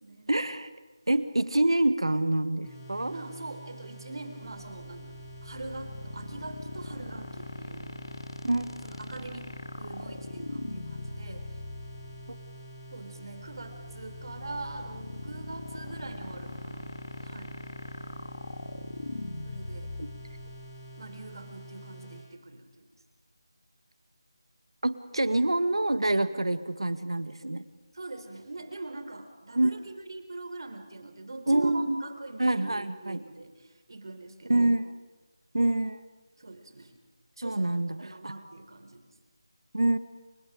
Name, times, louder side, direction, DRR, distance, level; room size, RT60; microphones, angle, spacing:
voice 1, 0.3-0.7 1.1-3.1 8.4-8.7 20.0-20.1 24.8-27.6 29.6-29.7 31.5-32.0 32.4-33.2 34.5-34.8 35.5-36.0 37.4-38.3 39.7-40.0, right 1 dB, 90° right, 11 dB, 1.7 m, -26 dB
sound 1, 2.6-22.3, right 2 dB, 15° left, 6.6 m, -47 dB
voice 2, 3.1-7.9 8.8-11.5 12.9-16.8 17.2-17.5 19.4-19.9 21.0-22.9 27.9-34.7 36.4-37.0 37.4-37.7 38.0-39.0, right 2 dB, 60° right, 8 dB, 3.8 m, -42 dB
sound 2, 4.4-21.6, left 2 dB, 70° left, 1.8 m, -41 dB
30.0 x 28.5 x 5.0 m, 1.2 s
figure-of-eight pair, 165°, 3 cm